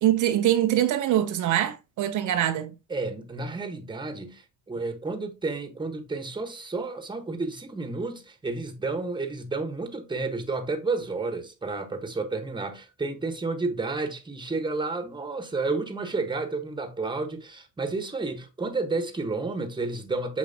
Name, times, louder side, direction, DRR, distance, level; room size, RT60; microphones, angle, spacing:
voice 1, 0.0-2.7, right 12 dB, 65° right, 0.8 m, -23 dB
voice 2, 2.9-20.4, right 3 dB, 15° right, 1.3 m, -31 dB
7.1 x 4.8 x 2.8 m
cardioid pair, 115°, 33 cm